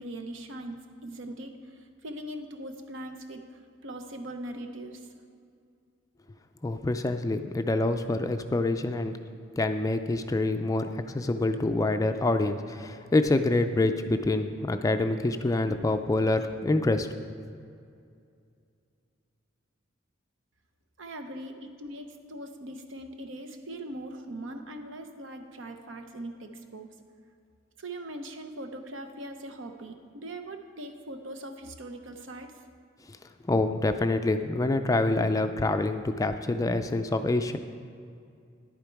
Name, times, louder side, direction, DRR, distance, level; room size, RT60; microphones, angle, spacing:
voice 1, 0.0-5.1 21.0-26.9 27.8-32.5, right 1 dB, 75° right, 6 dB, 0.9 m, -41 dB
voice 2, 6.6-9.2 9.6-17.1 33.5-37.6, left 2 dB, 15° left, 8 dB, 0.3 m, -26 dB
11.0 x 8.7 x 4.6 m, 2.4 s
head